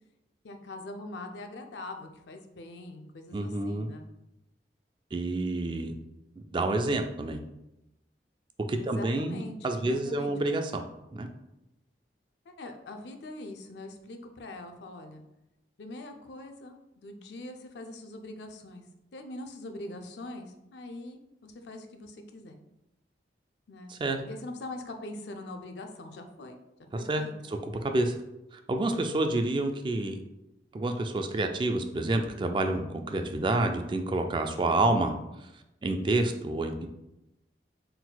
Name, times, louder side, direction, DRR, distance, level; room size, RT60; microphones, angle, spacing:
voice 1, 0.4-4.1 8.8-10.3 12.5-15.2 15.8-18.8 19.1-22.6 23.7-23.9 24.3-27.3, left 2 dB, 80° left, 5 dB, 0.5 m, -43 dB
voice 2, 3.3-3.9 5.1-5.9 6.4-7.4 8.7-10.8 11.1-11.3 23.9-24.2 26.9-27.2 27.5-28.2 28.5-30.2 30.7-35.1 35.8-36.9, right 2 dB, 25° right, 5 dB, 0.3 m, -28 dB
4.2 x 3.9 x 2.2 m, 0.90 s
head